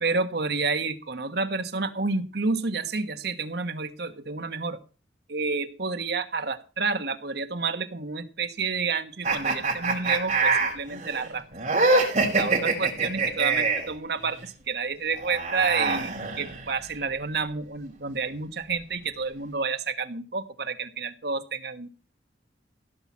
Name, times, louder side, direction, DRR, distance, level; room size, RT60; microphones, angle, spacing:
voice 1, 0.0-4.8 5.3-11.4 12.3-16.1 16.4-21.9, right 4 dB, 60° right, 8 dB, 1.2 m, -29 dB
sound 1, 9.2-13.9 15.1-16.8, right 3 dB, 40° right, 4.9 m, -25 dB
16.0 x 5.8 x 7.4 m, 0.36 s
head